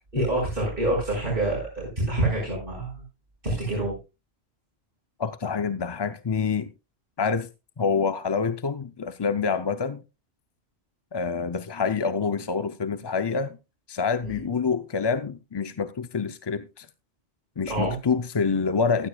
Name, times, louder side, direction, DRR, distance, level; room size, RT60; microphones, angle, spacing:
voice 1, 0.1-3.0 3.4-3.9 14.2-14.4 17.7-17.9, right 2 dB, 60° right, 5.1 m, -27 dB
voice 2, 5.2-6.7 7.2-7.5 7.8-10.0 11.1-13.6 13.9-16.9 17.6-19.1, left 5 dB, 35° left, 0.5 m, -26 dB
15.5 x 12.5 x 2.3 m
omnidirectional pair, 1.0 m